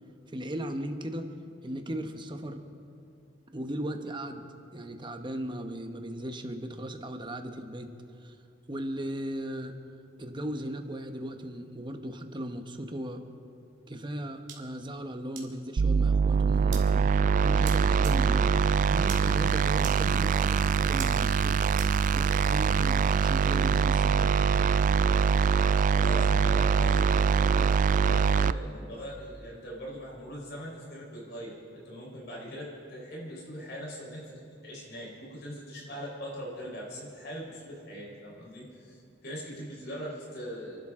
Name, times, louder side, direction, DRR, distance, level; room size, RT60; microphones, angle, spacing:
voice 1, 0.3-1.3 1.6-2.6 3.5-4.4 4.7-7.9 8.2-8.4 8.7-9.8 10.2-13.2 13.9-17.1 17.4-18.5 18.9-21.6 22.1-24.4, right 1 dB, 25° right, 6 dB, 1.1 m, -37 dB
sound 1, 14.5-14.6 15.4-15.5 16.7-16.8 17.6-17.7 18.0-18.1 19.1-19.2 19.8-19.9 21.0-21.1 21.8-21.9, right 8 dB, 85° right, 2.1 m, -39 dB
sound 2, 15.8-28.5, right 6 dB, 45° right, 0.3 m, -24 dB
voice 2, 25.9-40.8, equal, 60° left, -4 dB, 4.4 m, -41 dB
29.0 x 12.0 x 3.8 m, 2.6 s
head